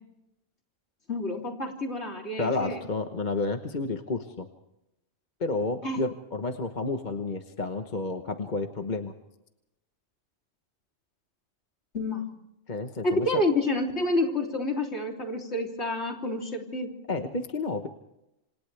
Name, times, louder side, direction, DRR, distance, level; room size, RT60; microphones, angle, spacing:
voice 1, 1.1-2.8 5.8-6.0 11.9-12.3 13.0-16.9, left 2 dB, 55° left, 1 dB, 3.6 m, -28 dB
voice 2, 2.4-4.5 5.4-9.1 12.7-13.4 17.1-17.9, left 3 dB, 40° left, 6 dB, 1.3 m, -31 dB
27.5 x 27.0 x 3.4 m, 0.88 s
omnidirectional pair, 1.3 m